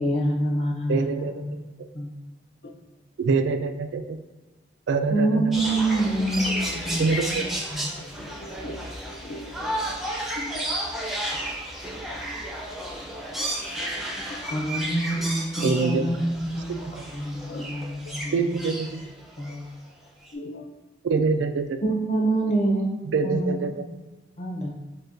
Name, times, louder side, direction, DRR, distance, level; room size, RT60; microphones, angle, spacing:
voice 1, 0.0-1.6 1.9-2.1 5.1-7.9 14.5-18.5 18.9-19.0 19.4-19.6 21.8-22.9 23.2-23.7 24.4-24.7, right 1 dB, 35° left, -1 dB, 0.8 m, -26 dB
voice 2, 0.9-1.3 3.2-4.2 4.9-5.4 7.0-7.4 15.6-16.1 16.8-16.9 18.3-19.0 21.0-21.8 23.1-23.8, right 4 dB, 80° right, 8 dB, 0.3 m, -24 dB
sound 1, 5.5-19.7 20.3-20.4, right 1 dB, ahead, 0.4 m, -32 dB
voice 3, 7.0-7.5 8.0-10.5 14.3-14.5 17.4-18.1 20.3-20.7 21.4-21.5, left 1 dB, 65° left, 4 dB, 0.4 m, -40 dB
6.5 x 2.2 x 2.5 m, 1.2 s
head